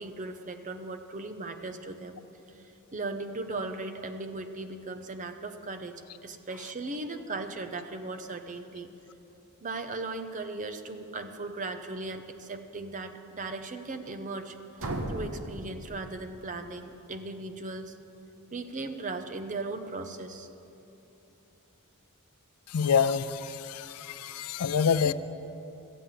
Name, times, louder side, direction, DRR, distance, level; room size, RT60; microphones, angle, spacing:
voice 1, 0.0-2.2 2.5-5.9 6.2-8.9 9.6-17.9 18.5-20.5 25.0-25.1, right 3 dB, 35° right, 7 dB, 0.7 m, -37 dB
sound 1, 14.8-16.7, right 1 dB, 65° right, 1.0 m, -37 dB
voice 2, 22.7-25.1, left 6 dB, 80° left, 14 dB, 0.5 m, -27 dB
13.5 x 8.4 x 7.5 m, 2.9 s
head